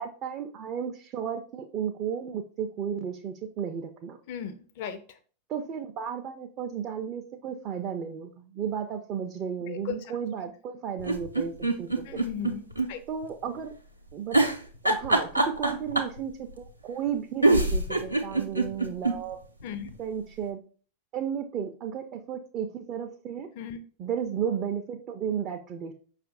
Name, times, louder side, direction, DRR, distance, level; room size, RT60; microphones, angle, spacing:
voice 1, 0.0-4.2 5.5-12.2 13.1-13.7 14.1-14.6 14.8-19.4 20.0-20.6 21.1-23.5 24.0-25.9, right 8 dB, 35° right, 4 dB, 0.4 m, -33 dB
voice 2, 4.3-5.0 9.7-10.0 12.0-13.0 19.6-19.9 23.6-23.8, left 8 dB, 50° left, 9 dB, 0.4 m, -36 dB
sound 1, 11.0-12.9 13.2-13.3 14.3-16.2 17.1-17.2 17.4-19.2 19.6-19.7 19.9-20.0, right 2 dB, 90° right, 0.5 m, -24 dB
5.5 x 2.4 x 3.8 m, 0.41 s
figure-of-eight pair, 90°, 0 cm